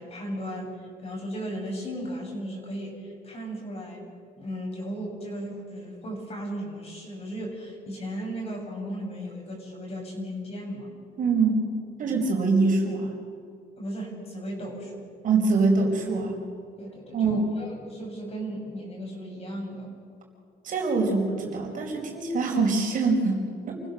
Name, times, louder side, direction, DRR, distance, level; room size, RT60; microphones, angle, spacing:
voice 1, 0.0-4.1 4.4-10.9 12.0-12.3 13.8-15.1 16.8-19.9, equal, 35° left, 0 dB, 7.2 m, -36 dB
voice 2, 11.2-11.7 12.0-13.1 15.2-16.4 17.1-17.4 20.6-23.8, right 4 dB, 50° right, 1 dB, 4.7 m, -24 dB
28.5 x 16.0 x 6.6 m, 2.3 s
cardioid pair, 110°, 17 cm